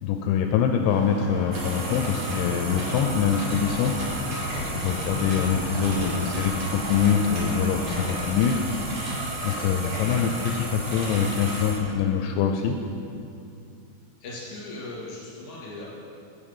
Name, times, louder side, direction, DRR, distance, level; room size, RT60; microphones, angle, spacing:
voice 1, 0.0-3.9 4.6-8.5 9.4-12.8, left 7 dB, 85° left, 4 dB, 2.8 m, -24 dB
sound 1, 0.8-8.2, equal, 70° right, 1.3 m, -36 dB
sound 2, 1.5-11.7, right 1 dB, 45° right, 2.4 m, -32 dB
sound 3, 3.4-9.0, equal, 85° right, 3.8 m, -43 dB
voice 2, 14.2-15.9, left 2 dB, 40° left, -6 dB, 3.0 m, -38 dB
8.7 x 7.6 x 5.4 m, 2.5 s
omnidirectional pair, 5.3 m